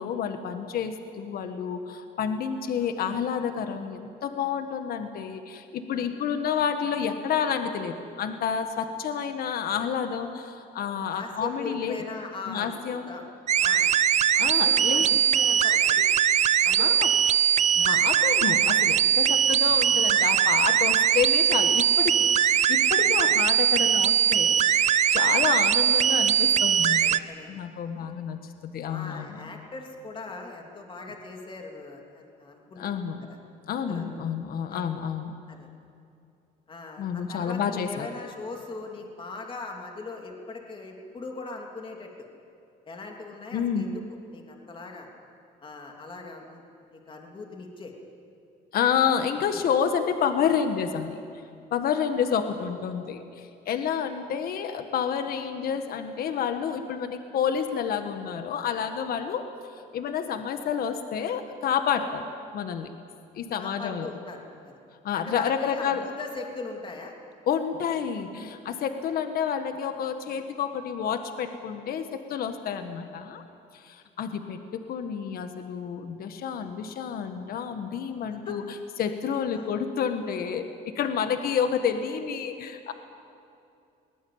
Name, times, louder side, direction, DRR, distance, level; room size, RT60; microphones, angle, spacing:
voice 1, 0.0-12.0 12.5-13.1 14.4-15.1 16.8-17.1 17.7-22.3 22.7-24.6 25.1-27.2 27.5-29.4 32.8-33.3 33.7-35.3 37.0-38.1 43.5-43.9 48.7-51.1 51.7-59.4 59.9-62.3 62.5-62.9 63.3-64.1 65.0-66.0 67.5-73.4 73.7-82.9, left 7 dB, 60° left, 7 dB, 1.5 m, -29 dB
voice 2, 11.1-13.2 13.6-13.9 14.3-16.1 16.6-16.9 17.8-18.0 23.2-23.4 27.0-27.6 28.0-28.1 28.9-32.9 33.3-33.4 33.8-34.0 34.7-34.9 35.5-35.7 36.7-42.3 42.8-44.0 44.3-45.1 45.6-46.6 46.9-47.9 63.6-64.8 65.1-67.1 78.4-78.5 79.5-79.8, left 3 dB, 30° left, 1 dB, 3.0 m, -40 dB
sound 1, 13.5-27.2, right 9 dB, 45° right, 0.6 m, -21 dB
22.0 x 19.5 x 8.7 m, 2.6 s
cardioid pair, 110°, 17 cm